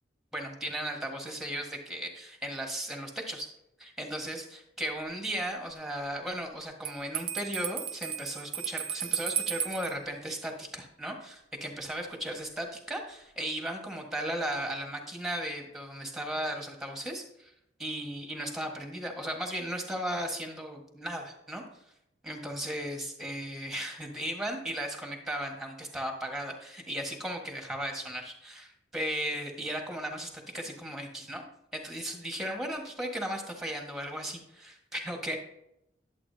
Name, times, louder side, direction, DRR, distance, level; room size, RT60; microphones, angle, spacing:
voice 1, 0.3-3.5 3.8-17.5 17.8-21.6 22.2-31.4 31.7-35.4, equal, ahead, 2 dB, 1.5 m, -36 dB
Bell, 6.8-9.9, right 8 dB, 30° right, 0.6 m, -34 dB
11.0 x 8.1 x 2.8 m, 0.78 s
head